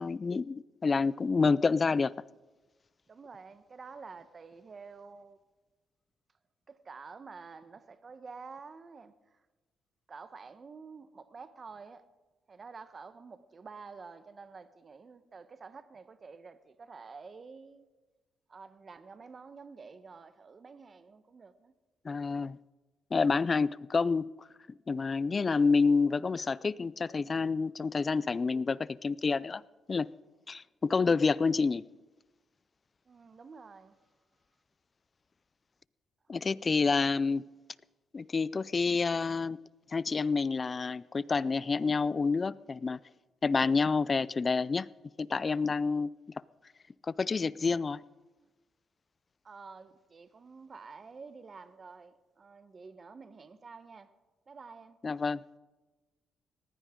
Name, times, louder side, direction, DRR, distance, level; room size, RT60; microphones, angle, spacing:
voice 1, 0.0-2.1 22.0-22.6 23.1-24.3 24.9-29.6 29.9-30.1 30.5-31.8 36.3-37.4 38.1-39.6 39.9-43.0 43.4-44.9 45.2-46.1 47.1-48.0 55.0-55.4, left 4 dB, 35° left, 0.4 m, -28 dB
voice 2, 3.1-5.4 6.7-9.4 10.1-12.0 12.5-17.9 18.5-21.7 33.0-34.0 48.4-48.5 49.4-54.1 54.5-55.0, right 4 dB, 40° right, 1.0 m, -49 dB
19.5 x 15.5 x 3.7 m
cardioid pair, 90°, 0 cm